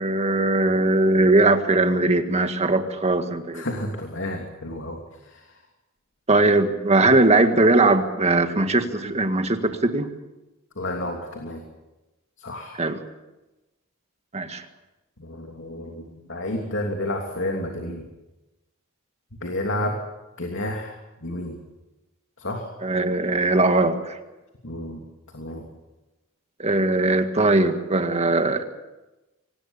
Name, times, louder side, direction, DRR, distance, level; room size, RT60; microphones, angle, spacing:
voice 1, 0.0-3.6 6.3-10.1 12.8-13.0 14.3-14.6 22.8-24.2 26.6-28.6, right 2 dB, 30° right, 7 dB, 1.8 m, -20 dB
voice 2, 3.5-5.6 10.7-11.6 12.4-12.8 15.2-18.0 19.4-20.0 20.4-21.6 22.4-22.7 24.6-25.0 25.3-25.7, left 1 dB, 60° left, 2 dB, 3.0 m, -31 dB
24.5 x 19.5 x 7.3 m, 1.0 s
head